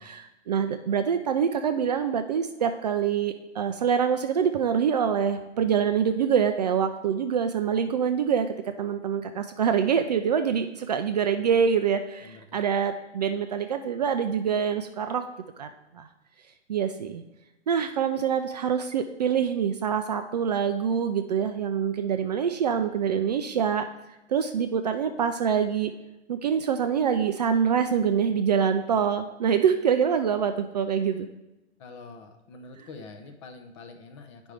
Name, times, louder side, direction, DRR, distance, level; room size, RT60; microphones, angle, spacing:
voice 1, 0.0-15.2 15.6-16.1 16.7-17.2 17.7-23.9 24.3-25.9 26.3-31.3, right 7 dB, 40° right, 7 dB, 0.4 m, -25 dB
voice 2, 12.2-12.6 31.8-34.5, left 3 dB, 25° left, 6 dB, 0.6 m, -45 dB
9.2 x 5.1 x 3.3 m, 0.96 s
hypercardioid pair, 130°, 35 cm